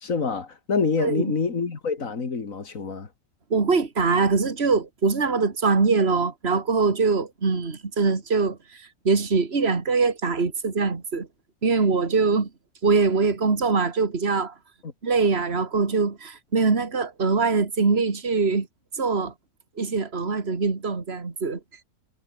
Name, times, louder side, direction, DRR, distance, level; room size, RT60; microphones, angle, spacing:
voice 1, 0.0-3.1 14.8-14.9, left 5 dB, 60° left, 2.7 m, -26 dB
voice 2, 1.0-1.3 3.5-11.3 11.6-12.5 12.8-14.5 15.0-18.7 18.9-19.3 19.8-21.6, right 4 dB, 40° right, 2.6 m, -23 dB
omnidirectional pair, 1.6 m